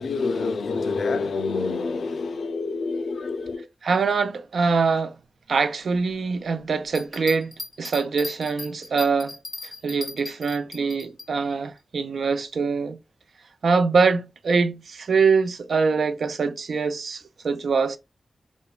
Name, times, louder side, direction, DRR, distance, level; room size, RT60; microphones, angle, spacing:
voice 1, 0.0-3.7, left 4 dB, 85° left, 0.3 m, -27 dB
voice 2, 3.8-5.2 5.5-7.5 7.8-9.4 9.6-13.0 13.6-18.0, right 5 dB, 75° right, 0.3 m, -23 dB
Bell, 6.9-11.3 11.8-11.9, left 2 dB, 25° left, 0.5 m, -38 dB
2.9 x 2.1 x 2.2 m
wide cardioid pair, 115°, 0 cm